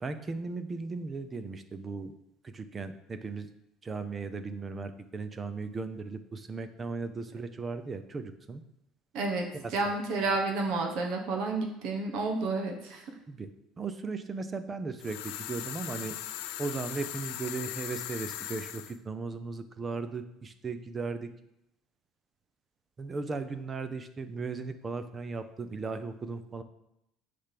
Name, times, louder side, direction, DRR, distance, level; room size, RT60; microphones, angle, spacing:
voice 1, 0.0-2.1 2.4-3.5 3.8-8.6 9.5-9.7 13.3-13.5 13.8-16.2 16.6-21.3 23.0-26.6, right 4 dB, 20° right, 10 dB, 0.5 m, -37 dB
voice 2, 9.1-13.1, right 3 dB, 50° right, 3 dB, 1.1 m, -30 dB
sound 1, 15.0-18.9, left 12 dB, 90° left, 0.6 m, -39 dB
10.0 x 3.4 x 5.8 m, 0.83 s
cardioid pair, 175°, 0 cm